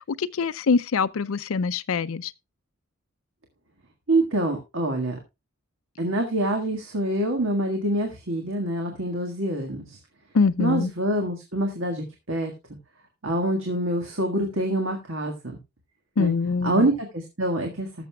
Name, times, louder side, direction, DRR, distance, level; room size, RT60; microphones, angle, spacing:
voice 1, 0.0-2.3 10.3-10.9 16.2-16.9, left 4 dB, 75° left, 0.5 m, -24 dB
voice 2, 4.1-5.2 6.0-10.0 10.6-12.5 13.2-15.6 16.2-16.3 16.6-17.9, right 1 dB, 65° right, 1.6 m, -26 dB
19.5 x 6.8 x 2.3 m
head